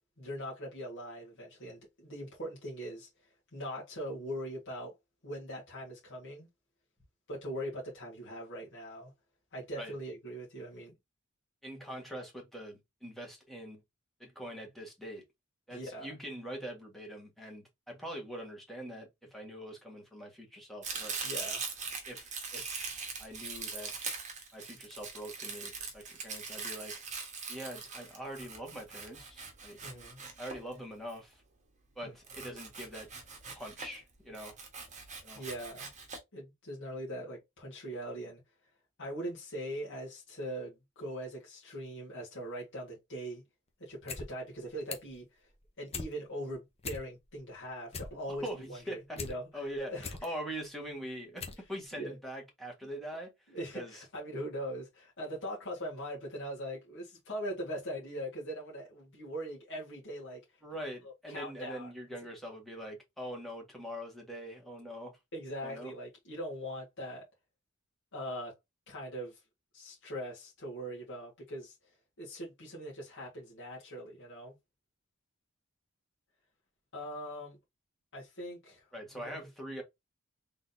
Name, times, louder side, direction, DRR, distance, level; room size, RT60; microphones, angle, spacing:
voice 1, 0.2-4.9 5.2-6.5 7.3-9.1 9.5-10.9 15.7-16.1 21.2-21.7 29.8-30.2 32.0-32.1 35.3-35.9 36.3-38.4 39.0-43.4 43.8-45.5 45.8-50.4 51.9-52.1 53.5-60.4 61.0-61.9 65.3-67.3 68.1-68.6 68.9-69.4 69.7-71.7 72.2-74.6 76.9-77.6 78.1-78.9 79.2-79.4, equal, 60° left, 1.7 m, -41 dB
voice 2, 11.6-13.8 14.2-15.2 15.7-21.2 22.1-22.8 23.2-23.9 24.5-26.9 27.5-29.8 30.4-31.4 32.0-33.1 33.5-34.6 35.2-35.4 48.3-49.2 49.5-51.4 51.7-53.3 53.7-54.0 60.6-65.2 65.6-65.9 78.9-79.8, equal, ahead, 1.7 m, -43 dB
Domestic sounds home sounds, 20.8-31.1 32.2-34.0 34.3-36.2, right 5 dB, 35° right, 1.3 m, -41 dB
sound 1, 43.9-44.3 44.6-45.2 45.6-46.1 46.5-46.6 46.8-47.4 47.7-49.3 49.7-50.3 50.8-50.9 51.4-51.6 51.9-52.0, left 5 dB, 30° left, 0.9 m, -41 dB
3.9 x 3.8 x 2.7 m
head